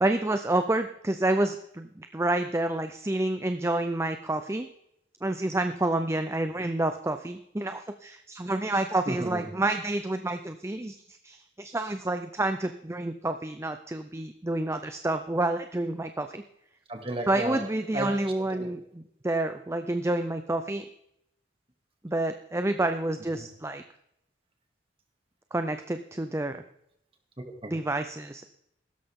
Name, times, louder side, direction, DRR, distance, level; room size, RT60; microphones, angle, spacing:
voice 1, 0.0-4.7 5.2-16.4 17.3-20.9 22.0-23.8 25.5-26.6 27.7-28.4, right 2 dB, 15° right, 8 dB, 0.5 m, -29 dB
voice 2, 9.1-9.5 16.9-17.6 17.9-18.1 18.5-18.7 23.4-23.5 27.4-27.7, right 1 dB, 30° right, 3 dB, 2.4 m, -33 dB
16.0 x 12.5 x 3.7 m, 0.78 s
head